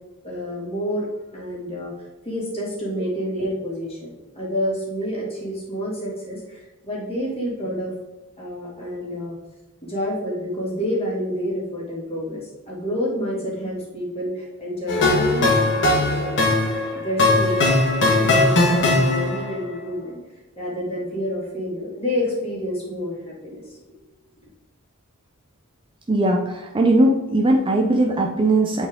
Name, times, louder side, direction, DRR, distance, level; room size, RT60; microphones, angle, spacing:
voice 1, 0.2-1.1 1.3-1.9 2.3-7.9 8.4-9.4 9.8-16.4 16.9-20.2 20.6-23.7, equal, 25° left, -5 dB, 2.3 m, -28 dB
sound 1, 14.9-19.6, left 2 dB, 55° left, 1.5 m, -19 dB
voice 2, 26.1-28.9, right 1 dB, 25° right, 1 dB, 0.5 m, -19 dB
8.0 x 4.5 x 3.6 m, 1.1 s
head